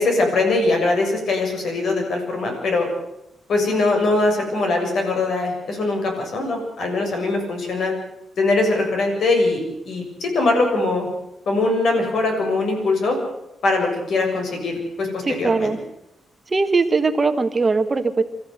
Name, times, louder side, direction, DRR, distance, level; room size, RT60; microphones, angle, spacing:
voice 1, 0.0-2.9 3.5-7.9 8.4-11.1 11.4-13.2 13.6-15.7, left 2 dB, 65° left, 3 dB, 6.9 m, -21 dB
voice 2, 15.4-15.8 16.5-18.2, right 4 dB, 25° right, 8 dB, 1.3 m, -20 dB
26.0 x 14.5 x 8.0 m, 0.87 s
cardioid pair, 125°, 0 cm